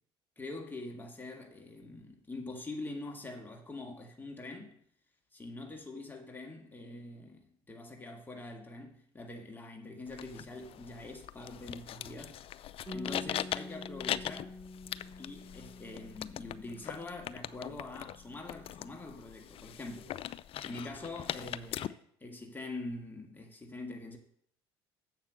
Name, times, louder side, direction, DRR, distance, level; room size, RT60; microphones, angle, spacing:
voice 1, 0.4-4.8 5.3-12.4 12.9-14.6 15.2-20.1 20.6-24.2, left 2 dB, 15° left, 1.7 m, -44 dB
sound 1, 10.1-21.9, left 11 dB, 45° left, 0.4 m, -41 dB
Bass guitar, 12.9-17.6 17.8-19.1, left 2 dB, ahead, 3.8 m, -48 dB
7.5 x 5.8 x 7.4 m
hypercardioid pair, 65°, 13 cm